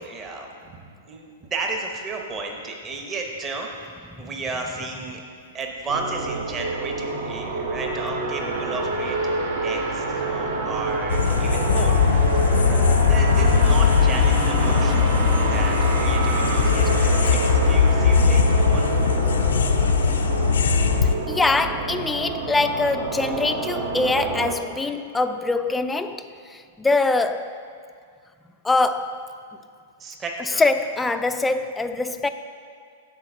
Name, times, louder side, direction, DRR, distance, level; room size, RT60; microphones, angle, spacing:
voice 1, 0.0-5.2 5.5-12.4 12.7-18.9 30.0-30.6, right 3 dB, 25° right, 0.9 m, -33 dB
sound 1, 5.9-24.5, right 3 dB, 65° right, 1.1 m, -27 dB
sound 2, 11.1-21.1, left 6 dB, 80° left, 0.4 m, -19 dB
voice 2, 21.0-27.6 28.6-29.3 30.6-32.3, left 3 dB, 10° left, 0.3 m, -23 dB
7.0 x 4.2 x 6.5 m
hypercardioid pair, 125°, 0 cm